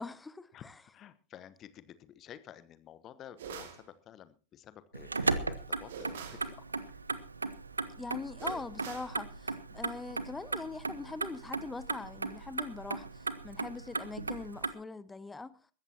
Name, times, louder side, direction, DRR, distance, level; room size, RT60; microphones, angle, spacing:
voice 1, 0.0-0.8 8.0-15.6, left 3 dB, 10° left, 0.7 m, -42 dB
voice 2, 0.5-6.6 9.7-9.9 13.6-13.7, left 10 dB, 30° left, 1.1 m, -52 dB
sound 1, 3.4-3.8 5.9-6.5 8.4-9.2, right 6 dB, 60° right, 2.3 m, -44 dB
Motor vehicle (road), 4.9-14.7, right 3 dB, 80° right, 0.8 m, -37 dB
21.0 x 14.5 x 2.9 m
figure-of-eight pair, 90°, 0 cm